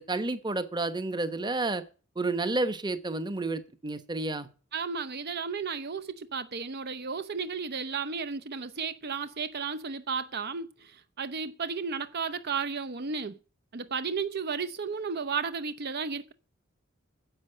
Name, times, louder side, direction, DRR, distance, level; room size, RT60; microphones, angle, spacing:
voice 1, 0.0-1.8 2.2-4.5, right 2 dB, 20° right, 1.0 m, -30 dB
voice 2, 4.7-13.4 13.7-16.3, right 5 dB, 50° right, 0.7 m, -33 dB
10.5 x 7.5 x 7.7 m
head